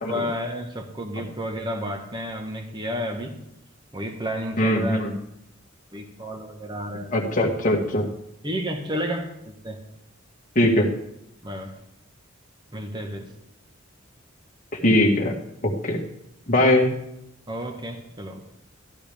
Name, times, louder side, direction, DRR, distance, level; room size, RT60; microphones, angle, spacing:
voice 1, 0.0-3.4 3.9-5.0 5.9-7.1 8.4-9.8 10.7-10.8 11.4-11.7 12.7-13.3 17.5-18.4, equal, 20° right, 4 dB, 1.3 m, -31 dB
voice 2, 4.6-5.1 7.1-8.1 10.6-10.9 14.7-15.3 15.6-16.0 16.5-16.9, left 1 dB, 40° left, 0 dB, 1.9 m, -21 dB
14.0 x 12.5 x 3.5 m, 0.81 s
head